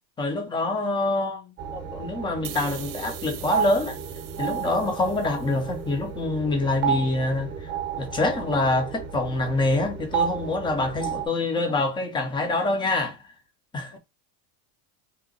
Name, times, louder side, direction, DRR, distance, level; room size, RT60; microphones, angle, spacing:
voice 1, 0.2-1.4 1.7-4.0 4.4-7.5 8.0-13.2 13.7-14.0, left 2 dB, 10° left, 0.5 m, -25 dB
voice 2, 0.9-1.6 2.4-2.6 13.9-14.0, left 9 dB, 75° left, 1.3 m, -49 dB
sound 1, 1.6-11.3, right 7 dB, 25° right, 0.8 m, -32 dB
sound 2, 2.4-5.8, right 13 dB, 60° right, 0.7 m, -42 dB
2.9 x 2.2 x 3.8 m
supercardioid pair, 135°, 49 cm